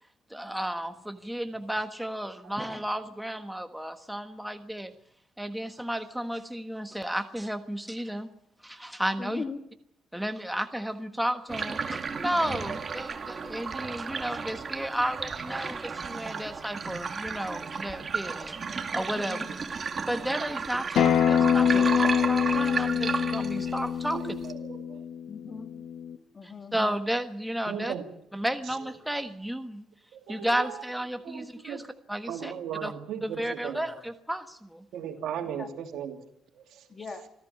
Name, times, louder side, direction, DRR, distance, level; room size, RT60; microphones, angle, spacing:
voice 1, 0.3-4.9 5.4-8.3 8.6-9.4 10.1-18.6 18.9-19.4 20.1-24.2 26.7-27.9 28.3-29.8 30.3-32.5 32.8-32.9 33.2-34.8, right 1 dB, 5° right, 7 dB, 1.4 m, -33 dB
voice 2, 9.2-9.6 12.3-12.6 19.1-19.5 25.3-25.7 26.3-26.7 35.6-35.7 36.9-37.3, left 4 dB, 35° left, 6 dB, 2.5 m, -39 dB
sound 1, 11.5-24.5, right 5 dB, 35° right, 2.1 m, -34 dB
Acoustic guitar, 21.0-26.2, left 8 dB, 75° left, 1.2 m, -25 dB
voice 3, 23.4-23.7 24.1-25.0 27.7-28.0 30.1-30.8 31.2-31.8 32.3-33.8 34.9-36.2 36.5-36.8, right 8 dB, 80° right, 4 dB, 3.2 m, -37 dB
25.5 x 15.0 x 8.5 m, 0.78 s
cardioid pair, 110°, 0 cm